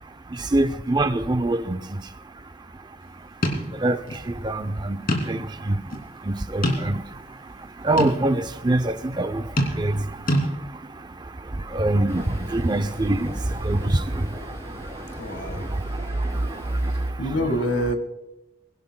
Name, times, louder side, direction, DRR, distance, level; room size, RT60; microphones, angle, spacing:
voice 1, 0.3-2.0 3.6-5.8 6.2-7.0 7.8-10.4 11.5-15.0 15.3-17.1, right 2 dB, 25° right, 0.5 m, -25 dB
sound 1, 3.4-3.7 4.1-4.2 5.1-5.5 5.9-6.0 6.6-7.2 8.0-8.2 9.6-10.0 10.3-10.4, equal, 55° left, 2.5 m, -24 dB
sound 2, 12.1-17.1, equal, 15° left, 3.2 m, -39 dB
voice 2, 15.2-15.7 17.2-17.9, equal, 75° left, 1.6 m, -25 dB
22.0 x 17.0 x 2.2 m
head